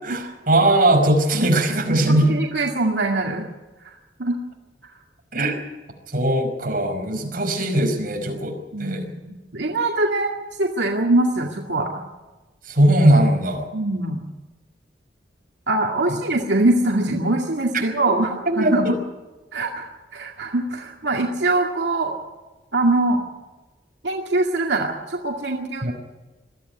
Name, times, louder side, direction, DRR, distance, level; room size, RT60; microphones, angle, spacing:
voice 1, 0.0-2.3 5.3-5.6 6.1-9.1 12.7-13.7 18.5-18.8 25.8-25.9, right 1 dB, 55° right, 3 dB, 5.3 m, -19 dB
voice 2, 2.1-3.5 4.2-4.4 7.2-7.4 8.7-10.3 10.6-12.0 13.7-14.2 15.7-19.0 19.5-22.2 22.7-23.2 24.0-25.9, right 2 dB, 85° right, 1 dB, 2.2 m, -23 dB
22.0 x 14.0 x 9.6 m, 1.2 s
head